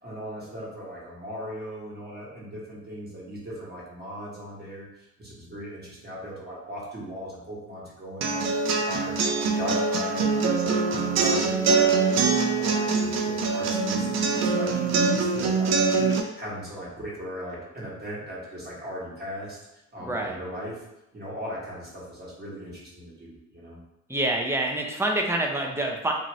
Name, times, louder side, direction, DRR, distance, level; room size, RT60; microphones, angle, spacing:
voice 1, 0.0-16.0 16.3-19.6 19.9-20.8 21.1-23.8, equal, 35° right, -5 dB, 1.3 m, -38 dB
sound 1, 8.2-16.2, right 4 dB, 60° right, 0.5 m, -24 dB
voice 2, 20.0-20.4 24.1-26.1, right 1 dB, 10° right, 1 dB, 0.5 m, -26 dB
2.7 x 2.4 x 3.1 m, 0.93 s
cardioid pair, 90°, 30 cm